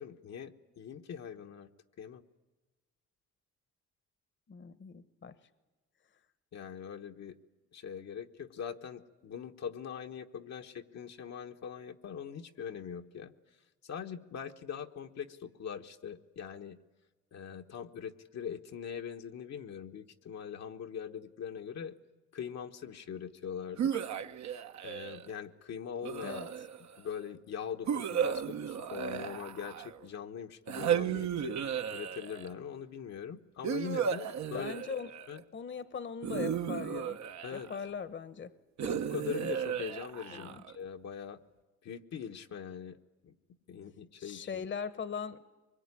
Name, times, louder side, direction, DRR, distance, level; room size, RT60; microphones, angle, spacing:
voice 1, 0.0-1.7 2.0-2.2 6.5-7.3 7.7-13.3 13.8-16.8 17.3-22.0 22.3-24.0 24.8-26.4 27.0-31.6 31.9-34.7 35.3-35.4 37.4-37.7 38.8-41.4 41.8-43.3 43.7-44.6, left 7 dB, 60° left, 4 dB, 1.2 m, -42 dB
voice 2, 4.5-5.3 26.2-26.5 34.5-35.1 35.5-37.2 37.5-38.5 40.3-40.6 44.2-45.4, left 6 dB, 40° left, 14 dB, 1.1 m, -40 dB
sound 1, 23.8-25.3 26.0-27.0 27.9-30.1 30.7-32.5 33.6-35.4 36.2-37.9 38.8-40.7, right 8 dB, 65° right, 1.2 m, -34 dB
23.5 x 21.5 x 9.8 m, 1.2 s
cardioid pair, 90°, 30 cm